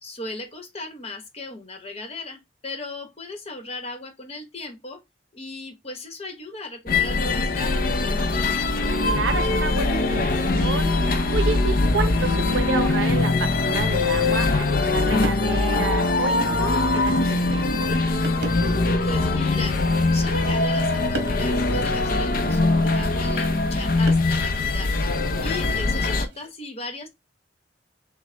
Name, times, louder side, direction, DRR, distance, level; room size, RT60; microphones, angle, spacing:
voice 1, 0.0-5.0 5.3-8.3 18.2-24.9 25.4-27.1, left 2 dB, 35° left, 1.0 m, -36 dB
sound 1, 6.9-26.3, left 3 dB, 50° left, 0.5 m, -22 dB
voice 2, 9.0-17.9, right 5 dB, 85° right, 0.6 m, -30 dB
sound 2, 13.5-13.7 14.8-14.9 15.2-15.7 16.3-16.4 17.3-17.5 18.2-19.0 19.8-20.4 21.1-21.5 23.0-23.2 24.1-24.7 26.2-26.5, right 2 dB, 60° right, 1.0 m, -36 dB
6.2 x 2.1 x 3.3 m
head